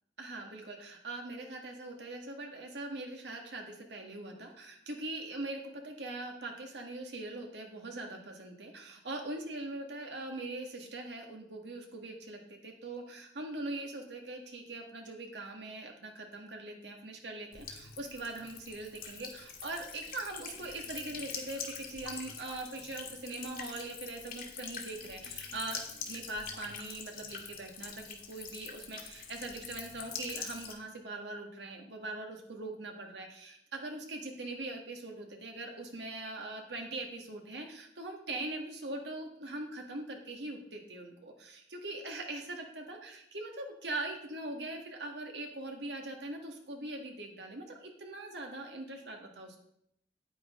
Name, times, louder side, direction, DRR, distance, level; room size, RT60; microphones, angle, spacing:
voice 1, 0.2-49.6, right 2 dB, 75° right, 2 dB, 1.8 m, -42 dB
Buzz / Water tap faucet / Trickle dribble, 17.5-30.7, left 6 dB, 55° left, 1.7 m, -44 dB
9.7 x 9.3 x 3.7 m, 0.75 s
head